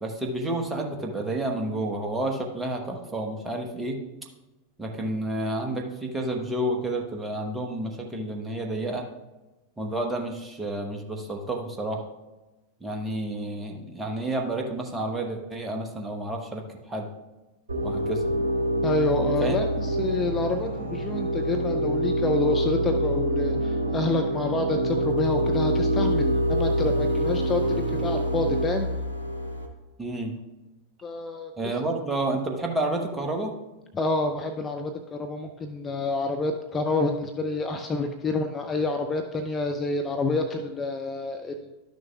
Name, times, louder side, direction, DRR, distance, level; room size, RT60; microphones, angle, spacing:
voice 1, 0.0-4.0 4.8-9.1 9.8-12.1 12.8-17.1 17.8-18.3 19.4-19.6 30.0-30.3 31.6-33.5, right 1 dB, 10° right, 1 dB, 1.2 m, -30 dB
sound 1, 17.7-29.7, right 1 dB, 65° right, 1.1 m, -26 dB
voice 2, 18.8-28.9 31.0-31.5 33.9-41.8, left 3 dB, 20° left, 5 dB, 0.5 m, -28 dB
12.0 x 6.4 x 2.4 m, 1.1 s
figure-of-eight pair, 90°, 0 cm